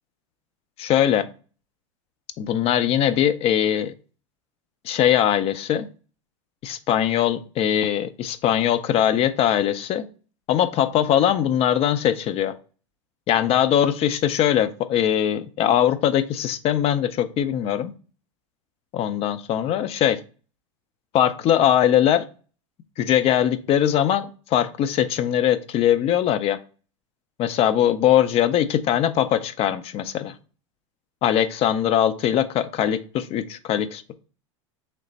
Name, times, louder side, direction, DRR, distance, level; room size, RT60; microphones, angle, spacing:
voice 1, 0.8-1.3 2.4-3.9 4.8-5.9 6.6-10.0 10.5-12.5 13.3-17.9 18.9-20.2 21.1-22.3 23.0-26.6 27.4-30.4 31.2-34.0, left 10 dB, 35° left, 12 dB, 0.4 m, -21 dB
3.2 x 3.1 x 3.9 m, 0.38 s
hypercardioid pair, 105°, 17 cm